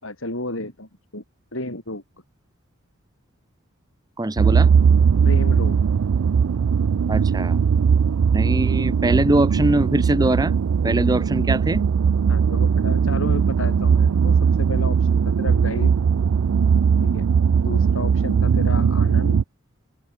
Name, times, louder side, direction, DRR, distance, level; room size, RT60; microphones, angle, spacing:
voice 1, 0.0-1.2 1.5-2.0 5.2-5.8 12.3-16.0 17.0-17.3 17.6-19.4, left 2 dB, 65° left, 7.4 m, -32 dB
voice 2, 4.2-4.7 7.1-7.6 8.3-10.5 10.8-11.8, right 1 dB, 20° right, 0.8 m, -22 dB
sound 1, 4.4-19.4, right 6 dB, 90° right, 0.4 m, -19 dB
open air
head